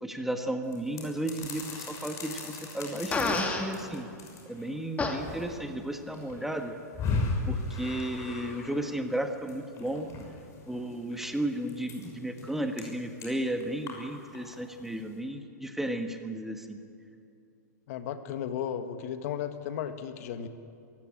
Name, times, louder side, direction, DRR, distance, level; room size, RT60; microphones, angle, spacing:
voice 1, 0.0-4.1 4.4-6.7 7.5-10.1 10.7-16.8, right 1 dB, 5° right, 5 dB, 1.5 m, -34 dB
sound 1, 0.7-15.2, left 3 dB, 30° left, 6.3 m, -38 dB
Fart, 3.1-3.7 5.0-5.2, left 3 dB, 15° left, 2.3 m, -28 dB
voice 2, 17.9-20.5, left 9 dB, 55° left, 9 dB, 1.6 m, -34 dB
23.0 x 15.0 x 8.9 m, 2.5 s
hypercardioid pair, 120°, 10 cm